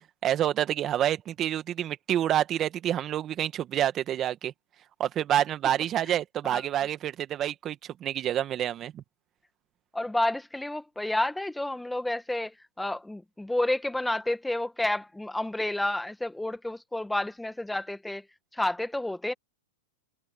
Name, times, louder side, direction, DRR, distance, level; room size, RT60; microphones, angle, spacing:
voice 1, 0.2-4.5 5.0-9.0, right 11 dB, 30° right, 1.7 m, -28 dB
voice 2, 9.9-18.2 18.5-19.3, left 1 dB, 5° left, 1.5 m, -30 dB
hypercardioid pair, 120°, 0 cm